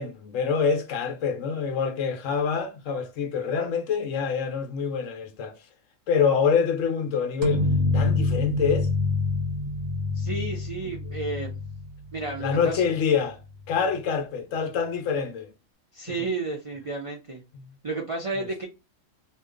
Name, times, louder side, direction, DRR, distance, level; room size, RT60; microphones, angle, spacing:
voice 1, 0.0-5.6 6.1-7.7 7.9-8.9 12.4-13.4 13.7-15.5 17.5-17.6, left 6 dB, 70° left, 1.0 m, -26 dB
sound 1, 7.4-12.9, left 3 dB, 80° right, 1.1 m, -27 dB
voice 2, 10.1-11.6 12.1-12.8 15.9-17.4 17.8-18.7, right 3 dB, 60° right, 0.3 m, -32 dB
2.7 x 2.2 x 3.6 m
omnidirectional pair, 1.5 m